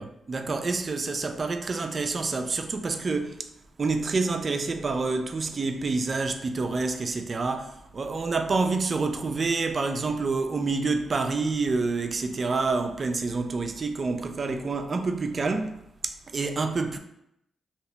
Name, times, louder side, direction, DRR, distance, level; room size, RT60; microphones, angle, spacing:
voice 1, 0.0-3.5 3.8-15.8 16.0-17.0, right 3 dB, 45° right, 0.4 m, -28 dB
2.8 x 2.7 x 3.3 m
cardioid pair, 75°, 0 cm